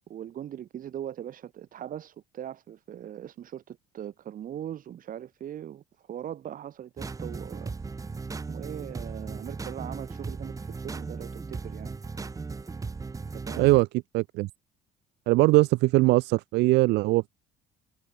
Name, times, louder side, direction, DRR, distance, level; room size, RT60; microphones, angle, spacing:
voice 1, 0.1-7.7 8.5-11.9 13.3-13.7, right 10 dB, 55° right, 2.4 m, -40 dB
sound 1, 7.0-13.8, right 4 dB, 20° right, 1.0 m, -37 dB
voice 2, 13.6-13.9 14.1-14.5 15.3-17.3, right 21 dB, 85° right, 0.7 m, -21 dB
cardioid pair, 110°, 17 cm